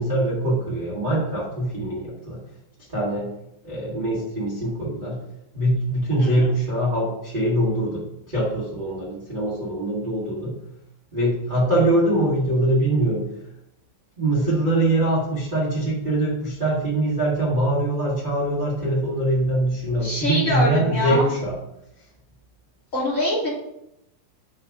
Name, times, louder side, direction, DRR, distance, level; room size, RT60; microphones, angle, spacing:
voice 1, 0.0-2.4 2.9-3.3 3.6-5.2 5.5-10.6 11.1-13.3 14.2-21.5, right 1 dB, 80° right, -8 dB, 0.4 m, -23 dB
voice 2, 6.2-6.5 20.0-21.3 22.9-23.5, left 1 dB, 30° left, -6 dB, 1.6 m, -24 dB
5.5 x 3.5 x 5.2 m, 0.82 s
omnidirectional pair, 4.1 m